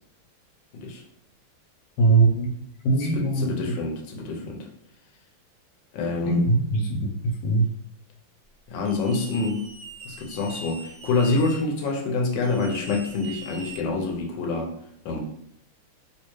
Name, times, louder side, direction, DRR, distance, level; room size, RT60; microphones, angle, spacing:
voice 1, 2.0-2.5 2.8-3.8 6.3-7.1 7.4-7.7, right 3 dB, 90° left, 1 dB, 1.7 m, -21 dB
voice 2, 3.0-4.7 5.9-6.4 8.7-9.6 10.0-14.7 15.0-15.2, left 3 dB, 70° left, 1 dB, 1.2 m, -27 dB
sound 1, 8.9-11.6 12.4-14.2, right 2 dB, 60° right, 1.0 m, -42 dB
3.5 x 2.8 x 3.0 m, 0.74 s
omnidirectional pair, 2.4 m